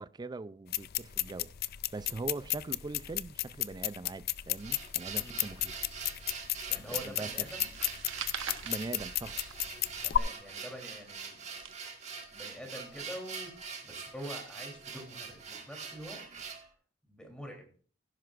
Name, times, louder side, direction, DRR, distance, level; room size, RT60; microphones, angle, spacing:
voice 1, 0.0-1.5 1.9-5.9 6.8-7.3 8.6-9.6, right 3 dB, 20° right, 0.4 m, -41 dB
sound 1, 0.7-10.2, left 13 dB, 55° left, 0.4 m, -34 dB
sound 2, 4.3-16.7, right 5 dB, 35° right, 1.7 m, -44 dB
voice 2, 6.7-7.7 10.0-11.4 12.3-16.3 17.1-17.8, equal, 5° left, 3.2 m, -45 dB
sound 3, 7.7-9.8 10.0-12.2, right 8 dB, 90° right, 1.0 m, -43 dB
16.5 x 10.5 x 2.5 m
head